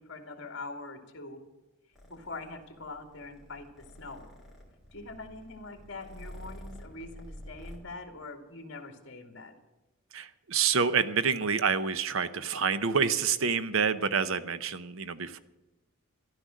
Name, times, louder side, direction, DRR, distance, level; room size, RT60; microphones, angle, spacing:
voice 1, 0.0-1.4 2.1-4.3 4.9-9.6, left 3 dB, 55° left, 5 dB, 2.1 m, -43 dB
Purr, 1.9-7.8, equal, ahead, 2.9 m, -49 dB
voice 2, 10.1-15.4, right 6 dB, 65° right, 13 dB, 0.7 m, -28 dB
13.5 x 11.5 x 6.3 m, 1.1 s
head